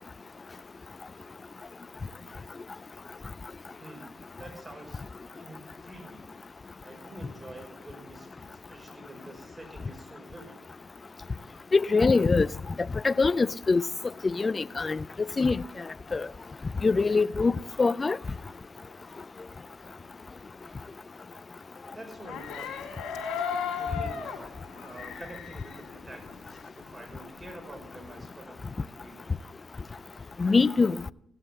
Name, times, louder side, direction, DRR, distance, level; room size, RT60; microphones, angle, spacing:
voice 1, 3.8-5.0 5.4-6.3 6.8-10.6 21.9-22.9 23.8-24.2 24.8-29.3, right 1 dB, 30° right, 5.5 m, -47 dB
voice 2, 11.7-12.5 13.0-13.8 14.2-15.0 15.4-15.6 16.1-16.3 16.8-17.5 17.8-18.2 30.4-31.0, left 4 dB, 40° left, 0.5 m, -23 dB
sound 1, 22.1-26.8 27.2-28.3, left 7 dB, 85° left, 2.2 m, -36 dB
17.0 x 7.7 x 7.3 m
supercardioid pair, 50°, 0 cm